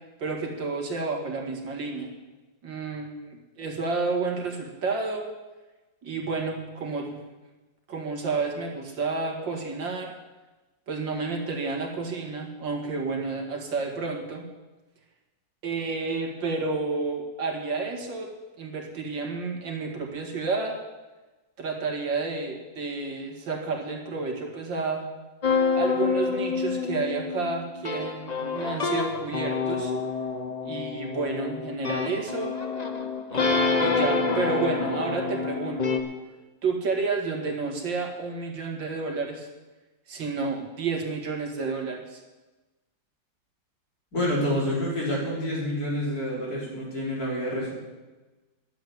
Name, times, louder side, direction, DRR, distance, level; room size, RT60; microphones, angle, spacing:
voice 1, 0.2-2.1 2.6-3.1 3.6-5.3 6.0-7.2 7.9-10.1 10.9-14.4 15.6-18.3 18.6-20.8 21.6-25.1 25.7-29.9 30.6-32.6 33.3-36.0 36.6-39.5 40.1-42.2, right 4 dB, 85° right, 1 dB, 2.7 m, -30 dB
sound 1, 25.4-36.0, left 4 dB, 30° left, 0.8 m, -27 dB
voice 2, 44.1-47.7, left 1 dB, 50° left, -5 dB, 4.7 m, -28 dB
11.5 x 7.8 x 9.3 m, 1.2 s
omnidirectional pair, 2.0 m